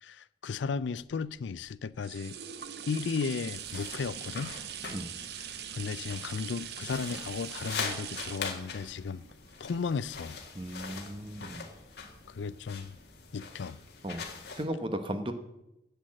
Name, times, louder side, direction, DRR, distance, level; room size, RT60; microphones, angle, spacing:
voice 1, 0.0-2.4 2.9-4.5 5.7-9.2 9.6-10.4 12.3-13.0 13.3-13.8, left 5 dB, 85° left, 0.4 m, -35 dB
sound 1, 1.1-10.7 11.3-11.4, right 9 dB, 65° right, 0.6 m, -42 dB
sound 2, 3.5-14.6, left 5 dB, 65° left, 1.9 m, -42 dB
voice 2, 10.5-11.6 14.0-14.2 14.5-15.3, right 1 dB, 30° right, 1.0 m, -35 dB
10.5 x 8.0 x 7.5 m
head